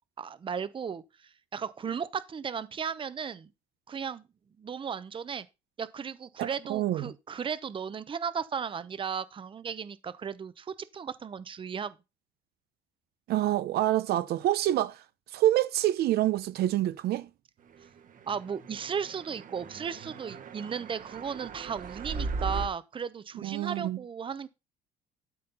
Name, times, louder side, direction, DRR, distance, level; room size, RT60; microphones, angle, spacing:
voice 1, 0.2-1.0 1.5-3.5 3.9-4.3 4.6-5.5 5.8-11.9 18.3-24.5, right 7 dB, 30° right, 0.8 m, -35 dB
voice 2, 6.4-7.1 13.3-15.0 15.3-17.3 23.4-24.0, right 14 dB, 70° right, 0.7 m, -27 dB
sound 1, 18.2-22.7, right 4 dB, 50° right, 1.3 m, -38 dB
12.5 x 4.3 x 5.5 m
cardioid pair, 110°, 17 cm